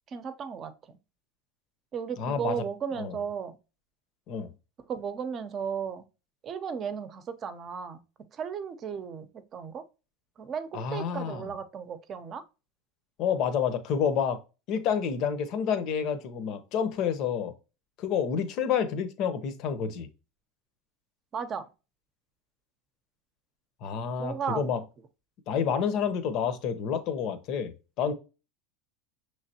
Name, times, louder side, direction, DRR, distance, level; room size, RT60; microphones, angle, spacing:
voice 1, 0.1-1.0 1.9-3.6 4.9-6.0 6.4-8.0 8.3-9.8 10.4-12.4 21.3-21.7 24.2-24.6, right 7 dB, 35° right, 0.7 m, -35 dB
voice 2, 2.2-2.6 3.0-3.1 4.3-4.5 10.7-11.5 13.2-14.4 14.7-17.5 18.0-20.1 23.8-24.8 25.5-28.1, left 7 dB, 55° left, 0.8 m, -29 dB
5.8 x 3.2 x 2.8 m
supercardioid pair, 105°, 0 cm